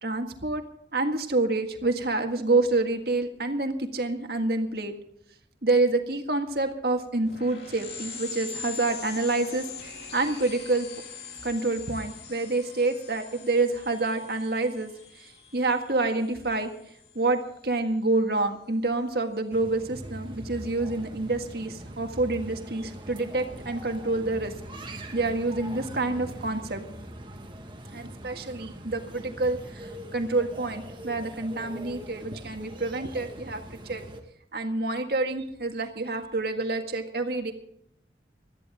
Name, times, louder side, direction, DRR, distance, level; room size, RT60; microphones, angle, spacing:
voice 1, 0.0-0.6 0.9-4.9 5.6-10.9 11.4-14.9 15.2-16.7 17.2-24.5 25.1-26.8 27.9-34.0 34.5-37.5, right 2 dB, 60° right, 5 dB, 1.8 m, -27 dB
sound 1, 7.2-17.4, left 5 dB, 65° left, 3.5 m, -42 dB
sound 2, 19.5-34.2, right 1 dB, 25° right, 1.6 m, -42 dB
21.0 x 13.5 x 3.7 m, 0.71 s
head